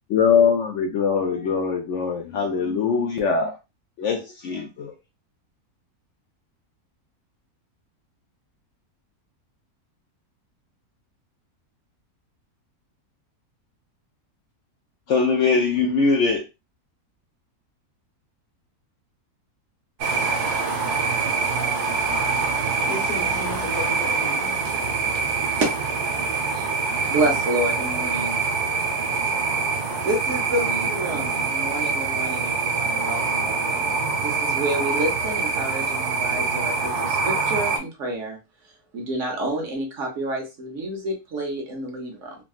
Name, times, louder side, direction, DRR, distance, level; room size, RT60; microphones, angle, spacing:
voice 1, 0.1-3.6 4.0-4.9 15.1-16.4, left 5 dB, 65° left, 2 dB, 0.8 m, -22 dB
sound 1, 20.0-37.8, right 4 dB, 90° right, 1.4 m, -25 dB
voice 2, 22.5-24.6, left 3 dB, 85° left, 1 dB, 1.6 m, -34 dB
voice 3, 27.1-28.4 30.0-33.9 34.2-38.4 38.9-42.3, right 1 dB, 60° right, 0 dB, 1.1 m, -28 dB
3.5 x 2.2 x 2.3 m, 0.27 s
omnidirectional pair, 1.6 m